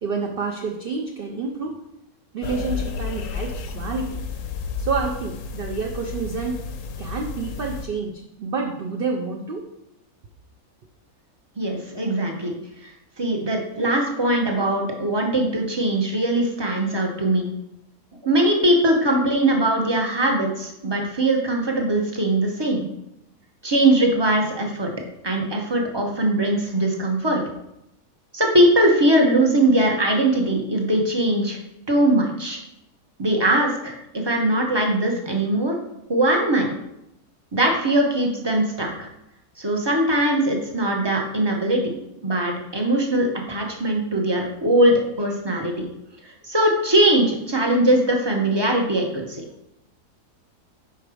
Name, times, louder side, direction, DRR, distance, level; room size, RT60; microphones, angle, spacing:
voice 1, 0.0-1.8 2.3-4.2 4.8-6.6 7.0-9.6, right 4 dB, 60° right, 1 dB, 0.6 m, -28 dB
sound 1, 2.4-7.9, left 5 dB, 65° left, 0.9 m, -31 dB
voice 2, 11.6-12.6 12.8-12.9 13.2-17.5 18.2-22.8 23.6-24.9 25.2-27.4 28.3-31.6 31.9-32.6 33.2-35.7 36.1-36.8 37.5-39.1 39.6-42.0 42.2-45.9 46.4-49.4, right 1 dB, 25° right, 1 dB, 0.7 m, -21 dB
5.4 x 4.6 x 4.9 m, 0.84 s
omnidirectional pair, 1.6 m